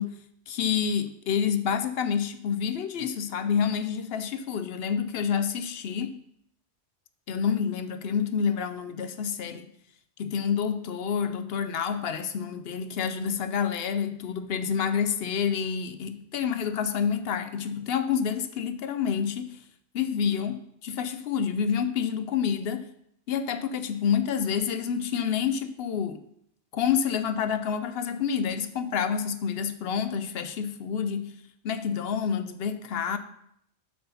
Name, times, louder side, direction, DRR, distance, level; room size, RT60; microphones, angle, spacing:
voice 1, 0.0-6.2 7.3-9.7 10.2-19.6 19.9-22.9 23.3-26.2 26.7-31.4 31.6-33.2, left 7 dB, 65° left, 0.7 m, -28 dB
7.7 x 4.1 x 5.5 m
omnidirectional pair, 1.2 m